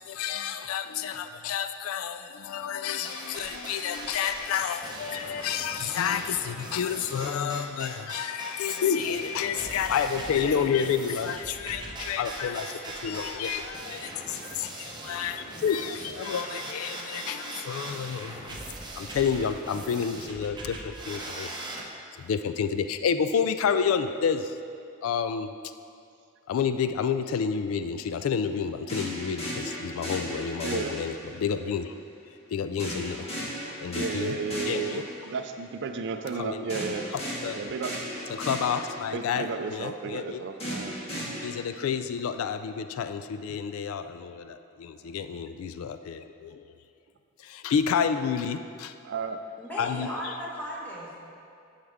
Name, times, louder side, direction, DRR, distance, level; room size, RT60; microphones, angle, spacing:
voice 1, 0.0-18.6 19.0-21.5 22.1-24.6 25.0-25.5 26.5-32.0 32.5-33.3 33.8-35.1 36.3-36.7 37.1-37.6 38.3-40.4 41.4-46.6 47.4-48.9 49.8-50.4, left 7 dB, 70° left, 10 dB, 0.3 m, -30 dB
sound 1, 3.0-21.8, right 2 dB, 20° right, 0.8 m, -40 dB
sound 2, 28.9-31.5 32.8-35.4 36.7-39.4 40.6-41.5, equal, 30° left, 1.8 m, -35 dB
voice 2, 30.6-30.9 33.9-37.1 37.6-37.9 39.1-40.9 45.0-45.1 49.0-49.4, right 5 dB, 55° right, 7 dB, 0.4 m, -33 dB
voice 3, 49.6-51.2, equal, 10° left, -7 dB, 1.7 m, -36 dB
9.8 x 7.2 x 3.5 m, 2.5 s
head